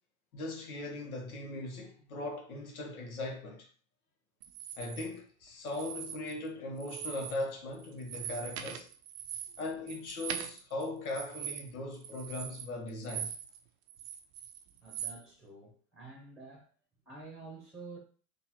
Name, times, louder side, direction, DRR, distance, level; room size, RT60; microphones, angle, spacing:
voice 1, 0.3-3.7 4.8-8.9 9.6-13.3, left 2 dB, 85° left, 1.3 m, -39 dB
sound 1, 4.4-5.1 5.7-6.5 6.8-7.4 7.7-13.6 13.9-15.2, right 9 dB, 35° right, 0.4 m, -42 dB
voice 2, 14.8-16.7 17.0-18.0, right 3 dB, ahead, 0.9 m, -49 dB
3.9 x 2.6 x 2.9 m
hypercardioid pair, 120°, 42 cm